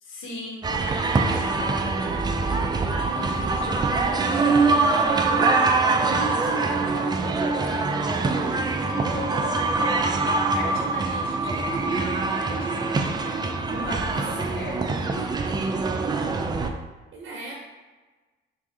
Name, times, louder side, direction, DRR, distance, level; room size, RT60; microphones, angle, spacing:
voice 1, 0.0-10.0 10.5-15.3, left 1 dB, 80° left, -3 dB, 1.1 m, -38 dB
sound 1, 0.6-16.7, right 3 dB, 20° right, 0.3 m, -24 dB
voice 2, 3.2-3.5 13.7-14.3 15.0-15.3 17.1-17.6, right 1 dB, 65° right, -1 dB, 0.6 m, -38 dB
3.5 x 2.5 x 3.7 m, 1.3 s
cardioid pair, 90°, 20 cm